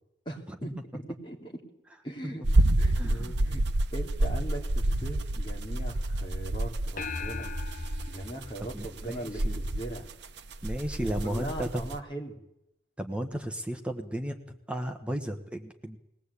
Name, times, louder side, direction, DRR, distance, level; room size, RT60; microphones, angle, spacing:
voice 1, 0.2-1.5 2.0-2.5 2.8-3.6 3.9-7.5 8.1-10.1 11.0-12.4, right 1 dB, 25° left, 0 dB, 3.1 m, -39 dB
sound 1, 2.4-12.0, right 1 dB, 65° right, 0.9 m, -28 dB
voice 2, 3.0-3.3 8.7-9.6 10.6-11.8 13.0-16.0, equal, 5° right, 5 dB, 1.2 m, -34 dB
sound 2, 7.0-9.6, left 4 dB, 45° left, 1.2 m, -39 dB
20.5 x 18.5 x 8.4 m, 0.82 s
head